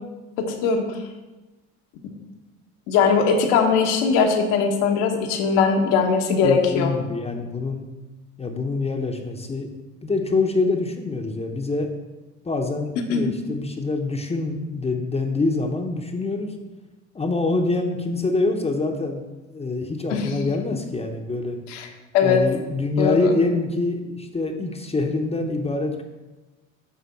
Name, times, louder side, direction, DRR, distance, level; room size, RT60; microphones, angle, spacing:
voice 1, 0.4-0.8 2.9-6.9 13.1-13.2 20.1-20.3 21.7-21.9 22.1-22.4 23.0-23.3, left 5 dB, 75° left, 3 dB, 1.3 m, -20 dB
voice 2, 6.4-7.8 8.4-9.7 10.0-11.9 12.4-16.5 17.1-19.3 19.5-21.6 22.2-26.0, left 3 dB, 20° left, 2 dB, 0.8 m, -25 dB
8.4 x 3.6 x 5.8 m, 1.2 s
supercardioid pair, 85°, 34 cm